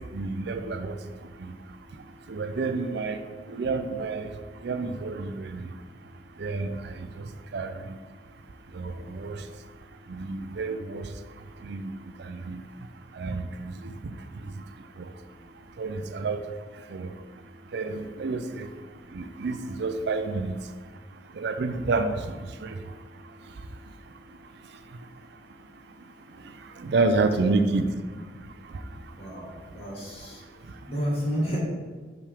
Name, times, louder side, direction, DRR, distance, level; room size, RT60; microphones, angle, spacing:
voice 1, 0.1-1.0 1.4-1.5 2.3-3.2 3.5-4.3 4.6-5.7 6.4-7.7 8.7-9.4 10.1-11.1 11.6-11.9 12.2-12.6 13.1-14.2 15.8-16.4 16.9-17.1 17.7-18.7 19.1-20.6 21.4-22.3 22.6-22.7 26.8-27.9, right 3 dB, 65° right, 8 dB, 0.5 m, -29 dB
voice 2, 29.2-30.4 30.9-31.6, equal, 35° left, -4 dB, 1.9 m, -31 dB
6.1 x 5.6 x 3.5 m, 1.5 s
head